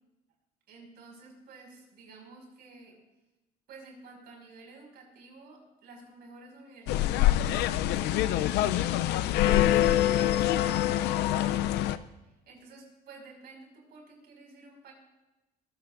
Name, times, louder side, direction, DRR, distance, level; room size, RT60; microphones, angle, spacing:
voice 1, 0.7-3.0 3.7-14.9, right 3 dB, 70° right, 1 dB, 5.5 m, -52 dB
sound 1, 6.9-12.0, left 13 dB, 85° left, 0.5 m, -25 dB
21.5 x 15.0 x 2.6 m, 1.0 s
cardioid pair, 110°, 17 cm